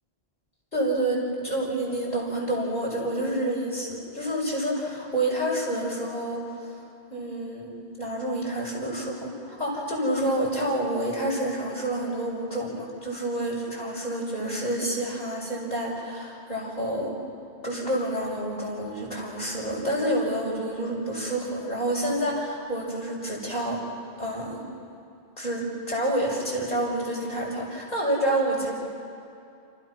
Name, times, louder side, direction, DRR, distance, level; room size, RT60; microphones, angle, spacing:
voice 1, 0.7-6.8 7.1-17.1 17.6-23.8 24.2-24.6 25.4-28.7, right 1 dB, 40° left, -3 dB, 6.3 m, -28 dB
29.0 x 29.0 x 6.1 m, 2.6 s
omnidirectional pair, 1.1 m